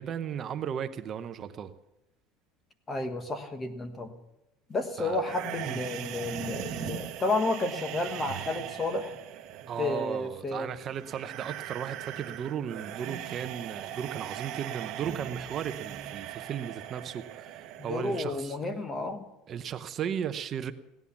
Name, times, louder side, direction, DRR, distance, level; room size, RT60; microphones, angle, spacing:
voice 1, 0.0-1.7 5.0-5.2 5.7-5.8 9.7-18.6 19.5-20.7, right 8 dB, 30° right, 10 dB, 0.7 m, -35 dB
voice 2, 2.9-4.1 4.7-9.1 9.8-10.7 17.8-19.2, left 2 dB, 20° left, 8 dB, 1.4 m, -31 dB
sound 1, 5.2-18.2, right 11 dB, 50° right, 1.3 m, -40 dB
16.5 x 11.0 x 7.1 m, 0.90 s
cardioid pair, 155°, 0 cm